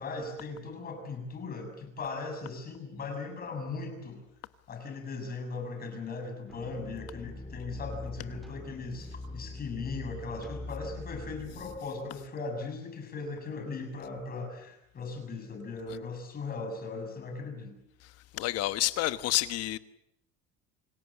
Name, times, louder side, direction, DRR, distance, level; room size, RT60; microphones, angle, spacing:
voice 1, 0.0-4.2 4.7-17.7, left 4 dB, 30° left, 6.6 m, -38 dB
sound 1, 6.5-11.8, left 2 dB, ahead, 2.3 m, -43 dB
voice 2, 18.3-19.8, left 15 dB, 55° left, 1.3 m, -29 dB
27.0 x 17.5 x 8.5 m
cardioid pair, 150°, 29 cm